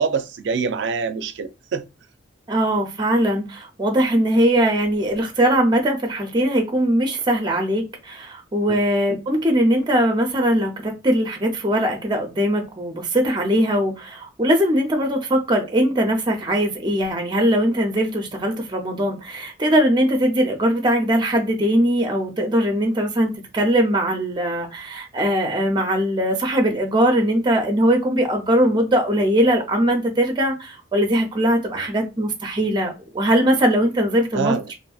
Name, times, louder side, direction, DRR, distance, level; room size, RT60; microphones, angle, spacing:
voice 1, 0.0-1.8 8.7-8.8 31.7-31.9 34.3-34.6, right 5 dB, 80° right, 0.4 m, -25 dB
voice 2, 2.5-34.5, equal, 25° right, 0.5 m, -20 dB
2.6 x 2.5 x 2.3 m
head